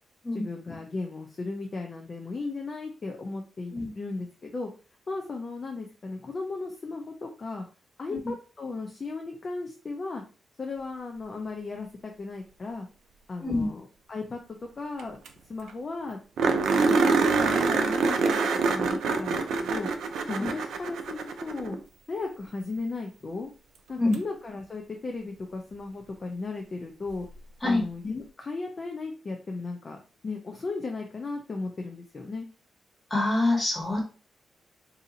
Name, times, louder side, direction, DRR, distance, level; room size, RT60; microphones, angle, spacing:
voice 1, 0.3-4.7 5.1-7.6 8.0-10.2 10.6-12.9 13.3-15.2 15.5-19.9 20.3-21.8 22.1-23.5 23.9-27.3 27.6-30.0 30.2-32.5, left 3 dB, 40° left, 2 dB, 0.5 m, -36 dB
sound 1, 15.0-15.1 15.3-15.4 15.7-15.8 16.4-21.8 24.1-24.2 27.1-27.2, right 4 dB, 90° right, 0.4 m, -25 dB
voice 2, 33.1-34.0, left 2 dB, 25° left, -2 dB, 1.5 m, -25 dB
2.7 x 2.6 x 3.8 m, 0.35 s
cardioid pair, 105°, 0 cm